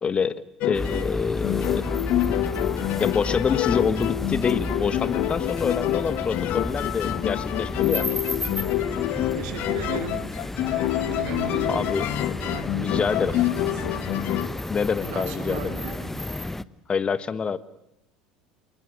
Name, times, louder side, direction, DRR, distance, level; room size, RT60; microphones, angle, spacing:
voice 1, 0.0-1.9 3.0-8.1 11.7-12.3 12.6-13.4 14.7-15.7 16.9-17.6, left 6 dB, 30° left, 1.4 m, -26 dB
sound 1, 0.6-14.5, left 13 dB, 55° left, 1.4 m, -27 dB
sound 2, 0.7-16.6, left 2 dB, 10° left, 1.1 m, -32 dB
voice 2, 9.1-10.3 10.6-12.1 12.4-13.9 15.0-16.1, right 7 dB, 65° right, 3.3 m, -37 dB
28.5 x 20.0 x 7.6 m
figure-of-eight pair, 70°, 4 cm